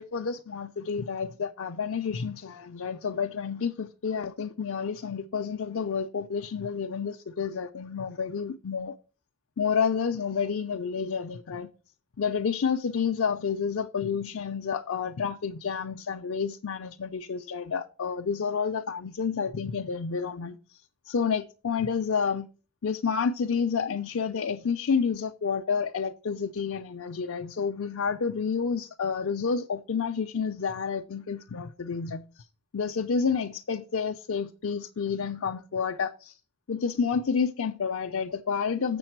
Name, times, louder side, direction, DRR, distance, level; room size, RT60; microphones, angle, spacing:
voice 1, 0.0-8.9 9.6-11.7 12.2-20.6 21.1-22.5 22.8-32.4 32.7-36.4 36.7-39.0, left 6 dB, 60° left, 0.5 m, -29 dB
7.1 x 6.9 x 4.5 m
head